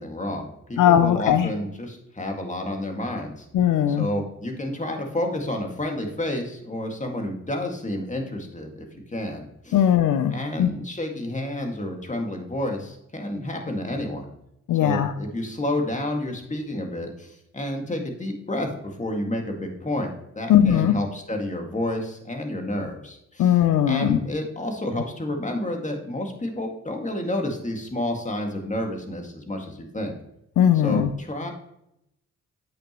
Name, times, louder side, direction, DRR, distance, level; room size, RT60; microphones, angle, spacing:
voice 1, 0.0-3.5 3.9-9.8 10.3-14.3 14.8-23.6 23.9-30.1 30.8-31.5, left 1 dB, 25° left, 2 dB, 2.0 m, -30 dB
voice 2, 0.8-1.5 3.5-4.1 9.7-10.7 14.7-15.1 20.5-20.9 23.4-24.2 30.6-31.1, left 10 dB, 80° left, 10 dB, 0.6 m, -19 dB
8.3 x 6.4 x 3.0 m, 0.80 s
cardioid pair, 60°, 31 cm